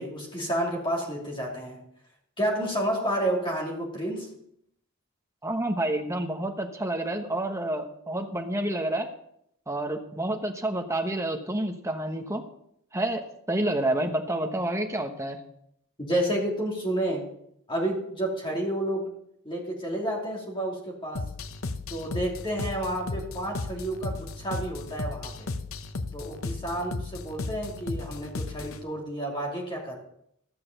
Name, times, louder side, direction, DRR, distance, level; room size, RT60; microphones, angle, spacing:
voice 1, 0.0-1.8 2.4-4.3 16.0-17.2 17.7-19.1 19.4-21.2 21.9-25.5 26.1-30.0, right 1 dB, 20° left, -1 dB, 2.9 m, -30 dB
voice 2, 5.4-9.1 9.7-12.4 12.9-15.4, right 1 dB, 15° right, 4 dB, 1.1 m, -29 dB
sound 1, 21.2-28.8, left 3 dB, 65° left, 0.8 m, -35 dB
13.5 x 6.8 x 6.6 m, 0.73 s
head